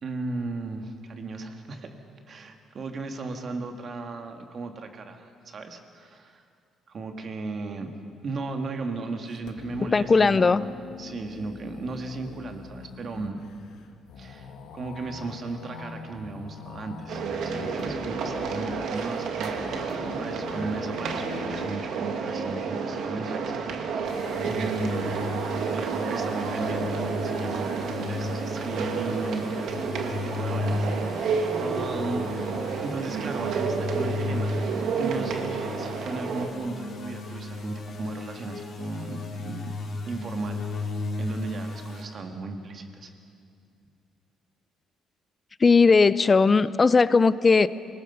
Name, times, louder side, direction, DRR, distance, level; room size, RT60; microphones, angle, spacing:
voice 1, 0.0-1.9 2.3-6.4 6.9-7.9 8.2-13.4 14.2-23.9 24.4-25.1 25.7-31.2 31.6-32.3 32.8-34.5 35.0-39.8 40.1-40.9 41.2-43.1, right 3 dB, 40° right, 5 dB, 1.9 m, -35 dB
sound 1, 8.5-21.7, left 5 dB, 75° left, 1.7 m, -42 dB
voice 2, 9.9-10.6 45.6-47.7, left 4 dB, 25° left, 17 dB, 0.5 m, -18 dB
sound 2, 17.1-36.5, right 5 dB, 70° right, 2.0 m, -30 dB
sound 3, 24.1-42.0, left 3 dB, 55° left, 3.5 m, -35 dB
27.5 x 19.5 x 5.6 m, 2.4 s
cardioid pair, 145°, 0 cm